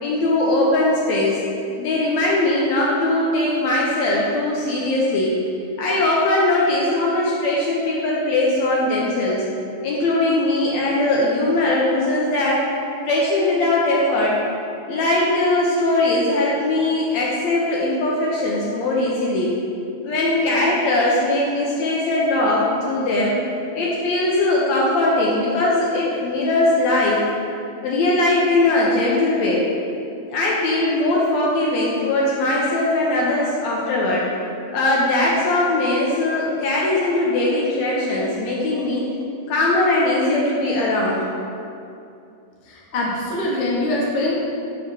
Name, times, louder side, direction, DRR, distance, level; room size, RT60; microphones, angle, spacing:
voice 1, 0.0-1.4 1.8-5.4 5.8-9.5 9.8-12.6 13.1-14.4 14.9-19.5 20.0-23.4 23.8-27.2 27.8-29.6 30.3-34.2 34.7-39.1 39.5-41.2, left 2 dB, 75° left, -4 dB, 1.9 m, -20 dB
voice 2, 42.7-44.3, left 1 dB, 60° left, -4 dB, 1.6 m, -23 dB
7.1 x 3.2 x 6.0 m, 2.6 s
omnidirectional pair, 3.4 m